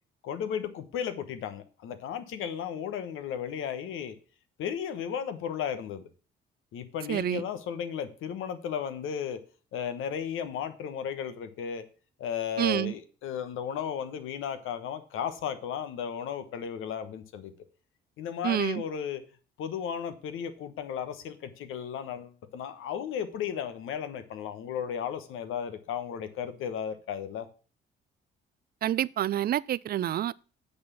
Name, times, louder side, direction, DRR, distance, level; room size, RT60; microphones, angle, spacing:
voice 1, 0.2-4.2 4.6-6.1 6.7-9.4 9.7-11.8 12.2-17.5 18.2-19.2 19.6-27.5, left 8 dB, 80° left, 1.2 m, -34 dB
voice 2, 7.1-7.4 12.6-12.9 18.4-18.8 28.8-30.3, right 12 dB, 50° right, 0.4 m, -28 dB
8.5 x 4.4 x 7.2 m
cardioid pair, 90°, 21 cm